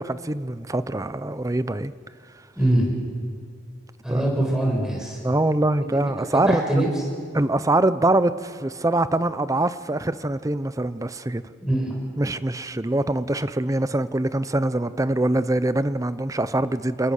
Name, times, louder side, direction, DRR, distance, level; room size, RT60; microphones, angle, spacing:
voice 1, 0.0-1.9 4.1-4.3 5.2-6.8 7.3-11.4 12.2-17.1, right 2 dB, 20° right, 14 dB, 0.7 m, -24 dB
voice 2, 2.6-3.0 4.0-5.2 6.3-6.9 11.6-12.0, right 1 dB, 5° right, -2 dB, 6.3 m, -23 dB
28.5 x 20.0 x 6.5 m, 2.1 s
head